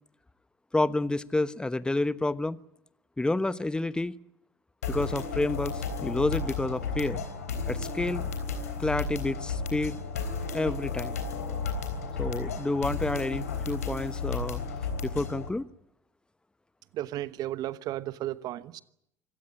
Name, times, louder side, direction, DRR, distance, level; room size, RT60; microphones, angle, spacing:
voice 1, 0.7-2.6 3.2-4.1 4.9-7.2 7.7-8.2 8.8-10.0 10.5-11.2 12.2-14.6 15.0-15.7, left 2 dB, 10° left, 1.1 m, -29 dB
sound 1, 4.8-15.5, left 4 dB, 80° left, 3.6 m, -33 dB
voice 2, 16.9-18.8, right 14 dB, 55° right, 1.0 m, -34 dB
25.5 x 16.5 x 10.0 m
figure-of-eight pair, 60°, 8 cm